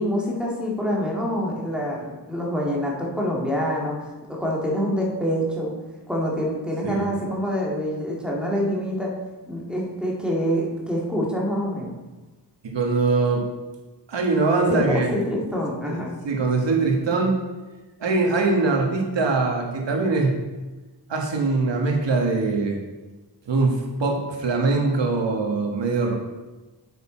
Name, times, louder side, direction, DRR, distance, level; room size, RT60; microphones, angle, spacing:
voice 1, 0.0-3.9 4.3-5.7 6.1-9.1 9.5-11.9 14.7-16.1, equal, ahead, -3 dB, 2.1 m, -26 dB
voice 2, 12.6-13.5 14.1-15.1 15.8-17.4 18.0-20.4 21.1-22.8 23.4-26.1, right 3 dB, 80° right, 1 dB, 1.6 m, -22 dB
8.6 x 6.8 x 4.4 m, 1.2 s
wide cardioid pair, 115°, 43 cm